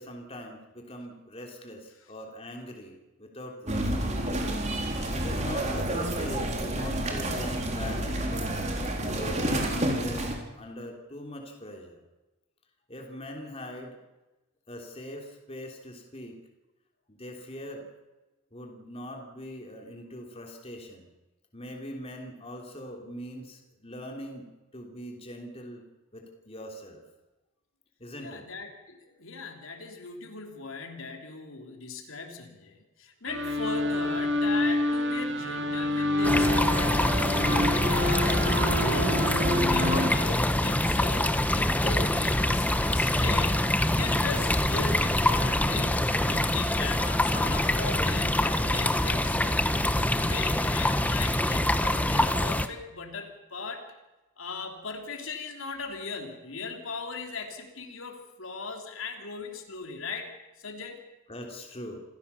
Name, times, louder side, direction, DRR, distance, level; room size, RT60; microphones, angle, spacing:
voice 1, 0.0-4.0 5.1-8.5 9.0-10.3 10.6-12.0 12.9-14.0 14.7-16.4 17.1-17.9 18.5-21.1 21.5-25.9 26.1-27.0 28.0-28.4 61.3-62.0, equal, 25° left, 2 dB, 3.3 m, -42 dB
sound 1, 3.7-10.3, right 1 dB, 35° right, 3.7 m, -29 dB
voice 2, 28.2-43.7 43.9-49.6 50.1-53.9 54.4-60.3 60.6-61.0, left 4 dB, 70° left, 4 dB, 3.2 m, -38 dB
sound 2, 33.3-40.1, left 1 dB, 55° right, 3.0 m, -27 dB
sound 3, 36.2-52.7, left 1 dB, 5° left, 1.0 m, -25 dB
27.0 x 16.5 x 7.1 m, 1.1 s
head